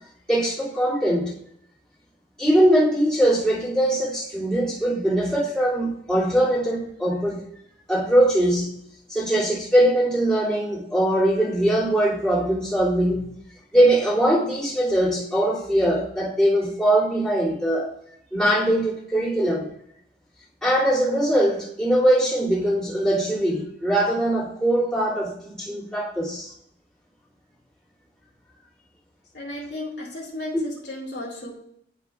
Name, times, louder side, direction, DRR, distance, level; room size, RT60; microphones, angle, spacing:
voice 1, 0.3-1.4 2.4-7.5 7.9-8.8 9.1-13.3 13.7-17.9 18.3-19.7 20.6-26.5, right 1 dB, 5° left, -9 dB, 2.6 m, -21 dB
voice 2, 29.3-31.6, left 1 dB, 75° left, -2 dB, 2.4 m, -34 dB
11.0 x 5.2 x 2.4 m, 0.72 s
head